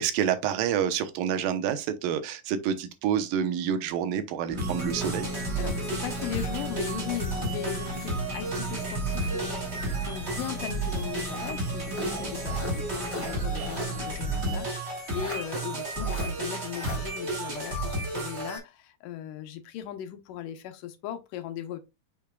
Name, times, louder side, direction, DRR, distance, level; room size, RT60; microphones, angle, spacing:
voice 1, 0.0-5.3, right 9 dB, 85° right, 2.6 m, -28 dB
sound 1, 4.5-14.6, equal, 65° right, 3.6 m, -37 dB
sound 2, 4.6-18.6, right 2 dB, 20° right, 2.3 m, -32 dB
voice 2, 5.6-21.8, left 11 dB, 75° left, 2.3 m, -38 dB
sound 3, 6.1-8.7 9.1-10.6 11.2-14.0 14.3-14.4 15.1-15.4 16.0-16.3 16.7-17.0, left 1 dB, 10° left, 3.3 m, -42 dB
6.9 x 6.4 x 2.3 m
omnidirectional pair, 3.9 m